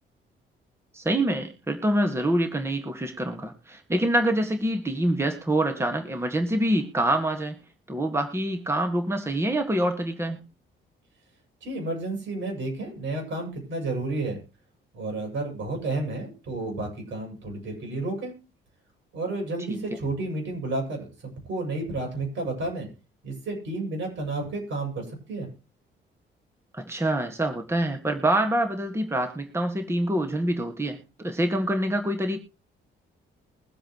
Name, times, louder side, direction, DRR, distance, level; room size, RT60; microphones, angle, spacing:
voice 1, 0.9-7.6 7.9-10.4 19.7-19.8 26.7-32.4, right 1 dB, 15° right, 5 dB, 1.9 m, -26 dB
voice 2, 11.6-14.4 14.9-18.3 19.1-22.9 23.2-25.5, right 2 dB, 70° right, 1 dB, 7.3 m, -31 dB
22.5 x 7.8 x 3.1 m, 0.30 s
cardioid pair, 90°, 20 cm